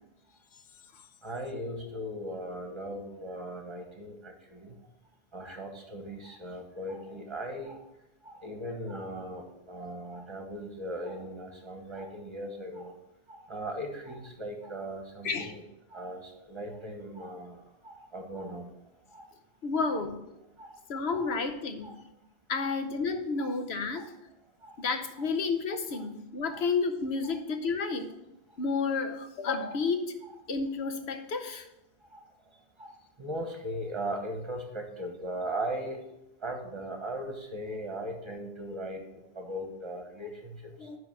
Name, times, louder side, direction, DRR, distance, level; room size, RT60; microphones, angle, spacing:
voice 1, 1.2-4.8 5.3-7.9 8.2-13.0 13.3-15.6 15.9-18.7 19.1-19.3 19.9-20.0 20.6-20.8 21.1-21.3 21.8-22.0 22.6-22.7 23.4-23.5 23.9-24.1 24.6-24.8 25.2-25.3 25.9-26.1 26.5-26.7 27.2-27.3 27.8-28.0 29.7-29.8 32.1-32.2 32.8-36.0 36.4-39.0 39.3-40.9, right 1 dB, 30° right, 4 dB, 1.4 m, -39 dB
voice 2, 19.6-20.2 20.9-21.9 22.5-24.1 24.8-28.1 28.6-30.1 30.5-31.7 40.8-41.0, left 4 dB, 90° left, 7 dB, 1.1 m, -31 dB
10.0 x 3.4 x 6.9 m, 0.91 s
omnidirectional pair, 1.0 m